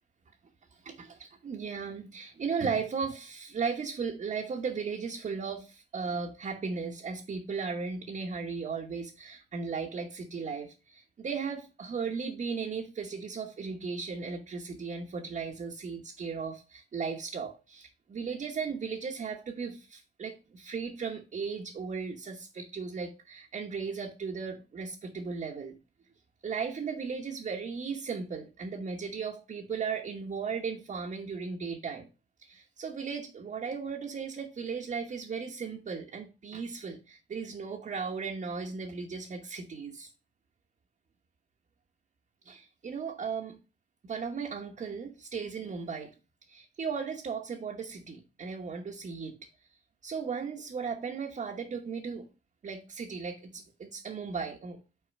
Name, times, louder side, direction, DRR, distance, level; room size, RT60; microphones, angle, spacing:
voice 1, 0.7-25.8 26.4-32.1 32.4-40.1 42.4-43.6 44.0-46.1 46.5-49.4 50.0-52.3 52.6-54.8, right 5 dB, 40° right, 1.1 m, -36 dB
5.9 x 4.1 x 5.3 m
cardioid pair, 90°, 20 cm